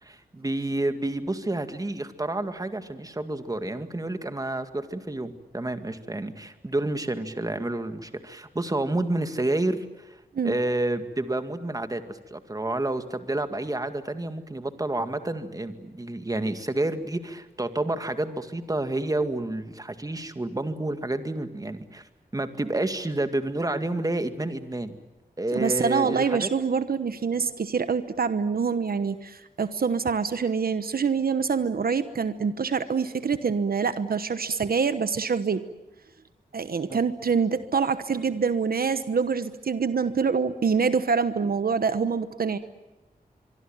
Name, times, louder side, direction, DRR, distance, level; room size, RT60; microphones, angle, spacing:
voice 1, 0.0-10.2 10.4-25.0 25.4-26.5 36.9-37.0, right 2 dB, 20° right, 9 dB, 2.0 m, -29 dB
voice 2, 25.5-35.6 36.5-42.6, right 5 dB, 70° right, 12 dB, 1.1 m, -25 dB
24.5 x 24.0 x 8.9 m, 1.1 s
wide cardioid pair, 105°, 16 cm